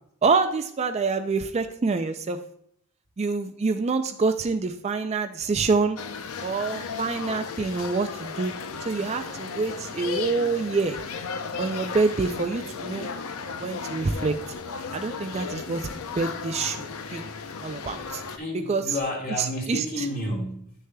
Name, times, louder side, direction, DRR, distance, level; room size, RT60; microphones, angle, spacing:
voice 1, 0.2-2.4 3.2-6.0 6.4-8.5 8.8-11.0 11.6-13.1 13.6-14.3 14.9-17.2 17.6-18.2 18.7-19.0 19.4-20.1, right 4 dB, 30° right, 7 dB, 0.3 m, -26 dB
sound 1, 6.0-18.4, left 5 dB, 75° left, 0.6 m, -35 dB
voice 2, 18.3-20.7, left 1 dB, 40° left, -1 dB, 1.9 m, -31 dB
11.0 x 6.5 x 2.2 m, 0.68 s
head